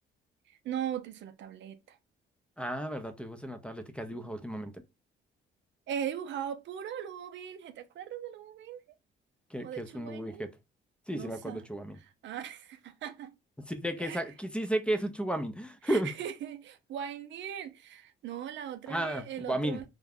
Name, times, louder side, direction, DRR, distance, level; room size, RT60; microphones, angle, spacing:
voice 1, 0.5-2.0 5.9-8.8 9.6-10.5 11.1-11.6 12.2-13.3 14.0-14.2 15.9-19.8, right 9 dB, 70° right, 0.5 m, -39 dB
voice 2, 2.6-4.7 9.5-10.5 11.1-12.0 13.7-16.1 18.9-19.8, right 1 dB, 5° left, 0.4 m, -33 dB
2.4 x 2.1 x 3.4 m
cardioid pair, 90°, 20 cm